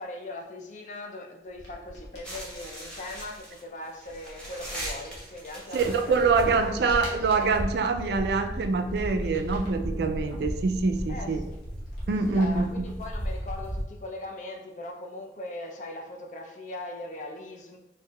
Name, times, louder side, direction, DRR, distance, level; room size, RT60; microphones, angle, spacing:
voice 1, 0.0-7.3 8.0-8.2 11.1-11.6 12.0-17.8, left 2 dB, 40° left, 1 dB, 0.4 m, -40 dB
sound 1, 1.5-2.5 5.5-5.6 6.1-7.8 8.4-9.8 10.2-12.9 13.2-13.3, equal, 80° left, 1.1 m, -45 dB
sound 2, 2.2-13.8, equal, 5° left, 0.9 m, -36 dB
voice 2, 5.7-11.4 12.1-12.6, right 4 dB, 65° right, 7 dB, 0.3 m, -25 dB
4.6 x 2.6 x 2.3 m, 0.94 s
head